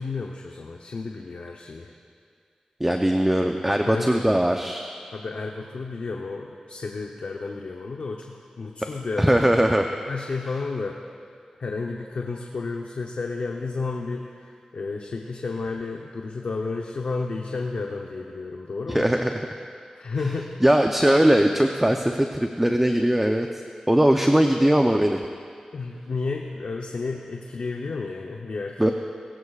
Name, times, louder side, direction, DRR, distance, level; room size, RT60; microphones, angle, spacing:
voice 1, 0.0-1.9 3.9-4.2 5.1-9.6 10.1-11.0 11.6-19.1 20.0-20.5 25.7-28.8, left 4 dB, 80° left, 1 dB, 0.9 m, -32 dB
voice 2, 2.8-4.9 9.2-9.9 18.9-19.4 20.6-23.5 23.9-25.2 28.8-28.9, right 1 dB, 10° right, 4 dB, 0.7 m, -20 dB
21.0 x 15.0 x 2.5 m, 2.2 s
cardioid pair, 50°, 2 cm